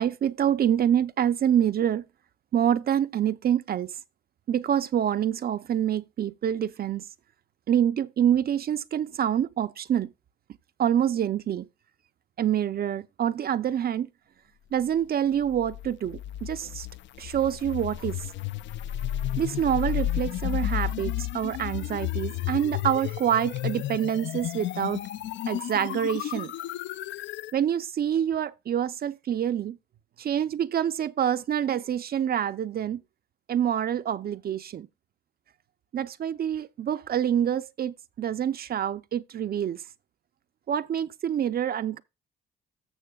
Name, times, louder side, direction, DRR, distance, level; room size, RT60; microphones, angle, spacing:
voice 1, 0.0-2.0 2.5-3.9 4.5-7.0 7.7-10.1 10.8-11.7 12.4-14.1 14.7-16.9 17.2-18.3 19.4-25.0 25.5-26.5 27.5-29.8 30.2-33.0 33.5-34.9 35.9-39.8 40.7-42.0, right 9 dB, 50° right, 0.5 m, -26 dB
sound 1, 15.4-27.6, left 12 dB, 65° left, 0.4 m, -32 dB
14.5 x 6.3 x 2.3 m
cardioid pair, 90°, 20 cm